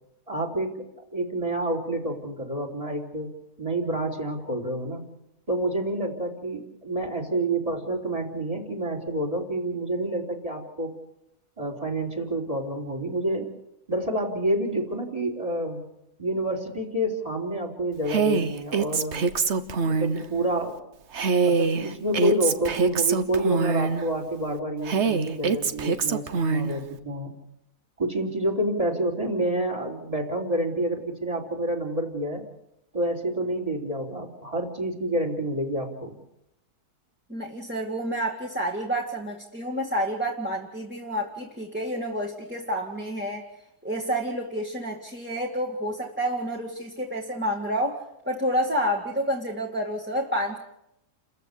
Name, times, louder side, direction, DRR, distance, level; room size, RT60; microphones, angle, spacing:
voice 1, 0.3-0.8 1.1-3.3 3.6-5.0 5.5-10.9 11.6-13.5 13.9-15.8 16.2-19.2 19.8-20.8 21.4-27.3 28.0-32.4 32.9-36.2, right 1 dB, 20° right, 3 dB, 3.9 m, -28 dB
Female speech woman speaking, 18.1-20.2 21.1-24.0 24.8-26.7, right 5 dB, 50° right, 1.3 m, -24 dB
voice 2, 37.3-43.4 43.8-50.6, equal, 5° right, -2 dB, 2.3 m, -29 dB
30.0 x 14.5 x 8.3 m, 0.84 s
omnidirectional pair, 1.7 m